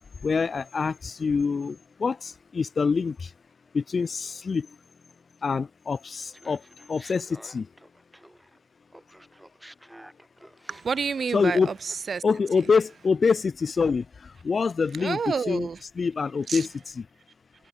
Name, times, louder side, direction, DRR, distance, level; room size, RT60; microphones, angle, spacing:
voice 1, 0.2-3.2 3.7-4.7 5.4-6.6 6.9-7.7 11.3-11.7 12.2-14.0 14.4-15.7 16.0-16.7 17.0-17.1, left 5 dB, 45° left, 0.3 m, -25 dB
Laughter, 6.3-8.6 8.9-12.1, right 1 dB, 5° right, 1.4 m, -51 dB
voice 2, 10.7-12.2 15.0-15.8 16.5-16.7, right 5 dB, 50° right, 0.6 m, -29 dB
supercardioid pair, 50°, 0 cm